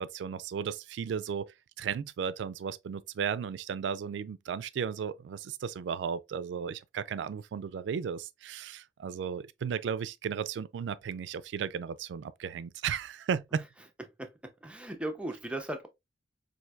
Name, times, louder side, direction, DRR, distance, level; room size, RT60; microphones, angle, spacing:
voice 1, 0.0-13.6, right 7 dB, 80° right, 0.3 m, -35 dB
voice 2, 14.6-15.9, right 1 dB, 5° right, 0.4 m, -37 dB
4.4 x 2.6 x 2.2 m
head